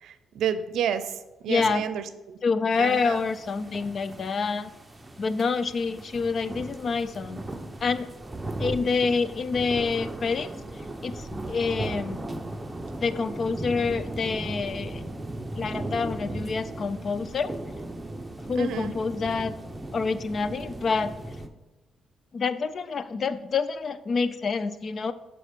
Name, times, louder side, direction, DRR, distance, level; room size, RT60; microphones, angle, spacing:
voice 1, 0.0-1.1 1.4-2.4 2.8-3.2 18.6-19.0, right 8 dB, 75° right, 12 dB, 0.5 m, -30 dB
voice 2, 1.5-1.8 2.4-4.7 5.2-7.4 7.8-8.1 8.6-10.5 11.0-12.3 13.0-15.0 15.5-17.6 18.5-19.6 19.9-21.1 22.3-25.1, left 4 dB, 45° left, 14 dB, 0.5 m, -27 dB
sound 1, 2.7-21.5, right 1 dB, 15° right, 0.8 m, -37 dB
7.3 x 4.6 x 5.3 m, 1.0 s
cardioid pair, 90°, 0 cm